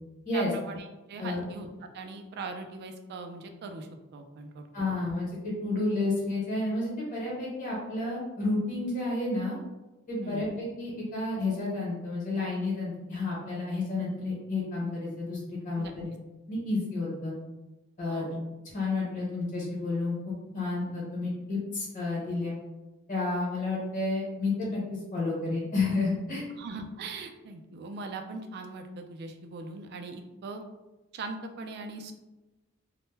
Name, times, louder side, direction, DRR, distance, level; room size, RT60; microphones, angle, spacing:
voice 1, 0.3-1.7 1.9-4.7 10.2-10.4 15.7-15.9 18.1-18.3 26.5-30.6 31.1-32.1, right 3 dB, 50° right, 5 dB, 0.3 m, -40 dB
voice 2, 4.7-9.6 10.1-16.0 16.5-17.3 18.0-18.2 18.7-22.6 23.1-24.8 25.1-26.4, left 2 dB, 40° left, -5 dB, 1.0 m, -31 dB
2.1 x 2.0 x 3.1 m, 1.1 s
head